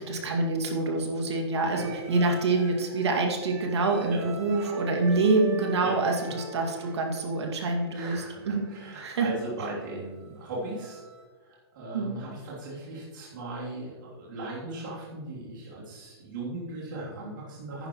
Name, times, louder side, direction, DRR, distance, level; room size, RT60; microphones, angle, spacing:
voice 1, 0.0-8.7 9.0-9.3 11.9-12.2, right 3 dB, 85° right, 2 dB, 2.3 m, -26 dB
sound 1, 1.7-11.2, right 1 dB, 25° right, 2.1 m, -46 dB
voice 2, 6.2-7.0 7.9-11.0 11.4-17.9, right 2 dB, 50° right, -6 dB, 3.1 m, -38 dB
10.5 x 10.0 x 3.1 m, 1.4 s
hypercardioid pair, 175°, 14 cm